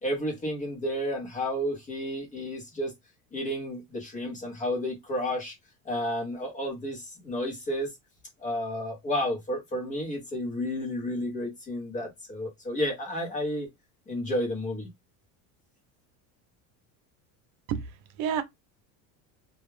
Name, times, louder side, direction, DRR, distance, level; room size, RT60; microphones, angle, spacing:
voice 1, 0.0-2.9 3.3-5.5 5.8-7.9 8.4-13.7 14.1-14.9, left 1 dB, 20° left, 0.7 m, -31 dB
voice 2, 17.7-18.4, right 8 dB, 85° right, 0.6 m, -30 dB
2.3 x 2.1 x 3.0 m
cardioid pair, 170°, 41 cm